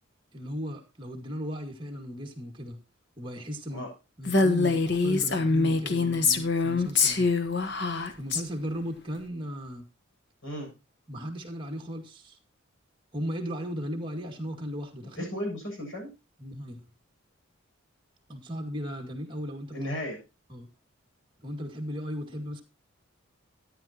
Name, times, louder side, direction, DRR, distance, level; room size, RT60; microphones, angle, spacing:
voice 1, 0.3-2.8 3.2-3.9 4.2-7.3 8.2-9.8 11.1-12.4 13.1-15.3 16.4-16.8 18.3-19.8 20.5-20.7 21.4-22.6, equal, 25° right, 3 dB, 2.1 m, -36 dB
Female speech woman speaking, 4.3-8.4, left 3 dB, 55° left, 1.2 m, -24 dB
voice 2, 15.2-16.1 19.7-20.2, equal, 70° left, 0 dB, 7.4 m, -34 dB
13.5 x 9.9 x 2.9 m, 0.29 s
head